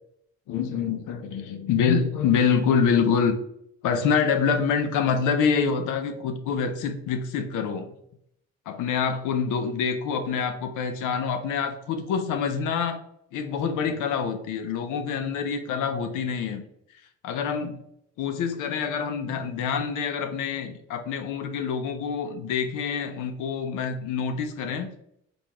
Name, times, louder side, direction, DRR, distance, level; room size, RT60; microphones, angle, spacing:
voice 1, 0.5-3.4 3.8-7.9 8.7-13.0 13.3-16.6 17.2-17.8 18.2-24.9, left 6 dB, 85° left, 7 dB, 0.6 m, -26 dB
3.9 x 3.3 x 2.9 m, 0.73 s
cardioid pair, 90°, 30 cm